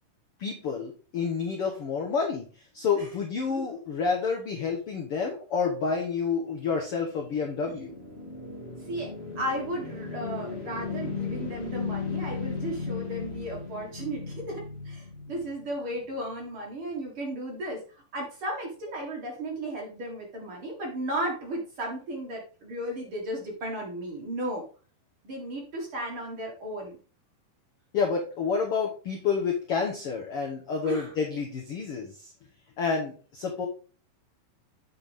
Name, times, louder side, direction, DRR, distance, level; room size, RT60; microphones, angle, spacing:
voice 1, 0.4-2.5 2.7-7.9 27.9-32.3 32.8-33.7, left 5 dB, 85° left, 1 dB, 1.2 m, -29 dB
sound 1, 7.0-16.0, left 4 dB, 25° left, 1.5 m, -36 dB
voice 2, 8.8-24.6 25.2-27.0 30.8-31.1, right 1 dB, 45° right, -1 dB, 2.2 m, -35 dB
7.9 x 5.9 x 3.5 m, 0.38 s
omnidirectional pair, 4.2 m